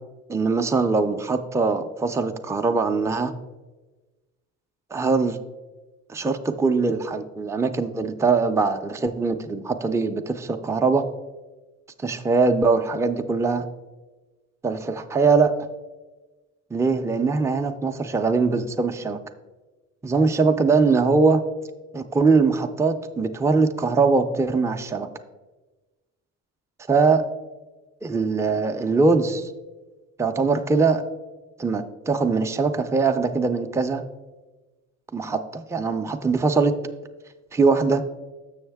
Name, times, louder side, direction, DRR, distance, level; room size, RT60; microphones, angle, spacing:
voice 1, 0.3-3.3 4.9-5.4 6.1-11.0 12.0-13.7 14.6-15.5 16.7-19.2 20.0-21.4 21.9-25.1 26.9-27.2 28.0-29.5 30.2-31.0 31.6-34.0 35.1-36.7 37.5-38.0, right 4 dB, 10° right, 6 dB, 0.4 m, -22 dB
6.9 x 6.4 x 3.4 m, 1.2 s
cardioid pair, 90°, 30 cm